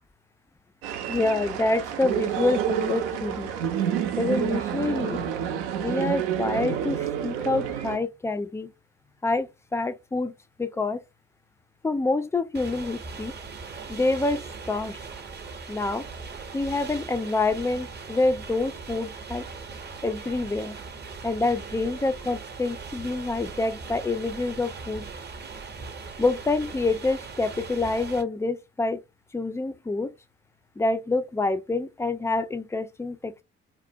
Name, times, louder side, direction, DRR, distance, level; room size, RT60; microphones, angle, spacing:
sound 1, 0.8-8.0, right 9 dB, 75° right, 0.5 m, -29 dB
voice 1, 1.1-3.5 4.2-5.2 5.8-8.7 9.2-10.3 10.6-11.0 11.8-13.4 13.9-15.0 15.7-16.1 16.5-19.4 20.0-20.8 21.2-25.1 26.2-29.0 29.3-30.1 30.8-33.4, left 3 dB, 10° left, 0.3 m, -27 dB
sound 2, 12.5-28.2, right 4 dB, 35° right, 0.7 m, -40 dB
2.5 x 2.0 x 2.6 m
hypercardioid pair, 45°, 31 cm